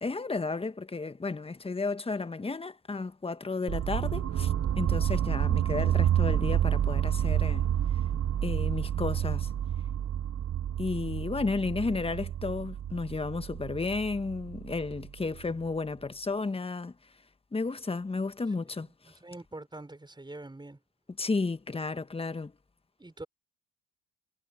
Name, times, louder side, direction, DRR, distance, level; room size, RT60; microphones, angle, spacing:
voice 1, 0.0-7.7 8.4-9.5 10.8-16.9 17.5-18.9 21.2-22.5, left 3 dB, 15° left, 1.5 m, -33 dB
sound 1, 3.7-15.6, right 10 dB, 40° right, 1.3 m, -29 dB
voice 2, 19.2-20.8 23.0-23.3, right 2 dB, 10° right, 6.6 m, -44 dB
hypercardioid pair, 65°, 36 cm